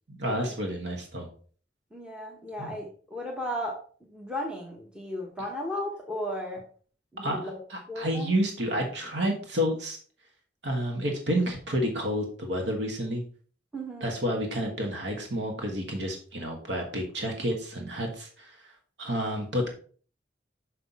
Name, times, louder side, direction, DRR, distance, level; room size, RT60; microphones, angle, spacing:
voice 1, 0.1-1.3 2.6-2.7 7.2-7.4 7.7-10.0 10.6-13.2 14.0-18.7 19.0-19.7, equal, 70° right, 2 dB, 1.4 m, -30 dB
voice 2, 1.9-3.8 4.1-6.6 7.1-7.6 7.9-8.3 13.7-14.1, equal, 5° right, -1 dB, 1.1 m, -35 dB
6.4 x 5.7 x 4.1 m, 0.44 s
head